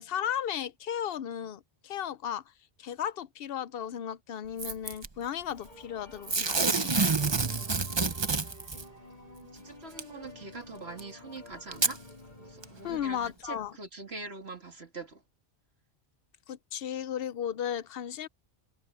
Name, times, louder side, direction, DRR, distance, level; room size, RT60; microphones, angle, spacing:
voice 1, 0.0-2.4 2.8-6.9 12.8-13.7 16.5-18.3, left 9 dB, 70° left, 0.8 m, -35 dB
Packing tape duct tape / Tearing, 4.6-5.1 6.3-8.8 10.0-10.1 11.0-11.1 11.7-12.0 12.6-12.7, right 4 dB, 30° right, 0.8 m, -28 dB
sound 1, 5.6-13.3, left 2 dB, 45° left, 4.7 m, -51 dB
voice 2, 9.2-12.0 12.4-15.2, right 3 dB, 85° right, 3.2 m, -44 dB
omnidirectional pair, 1.1 m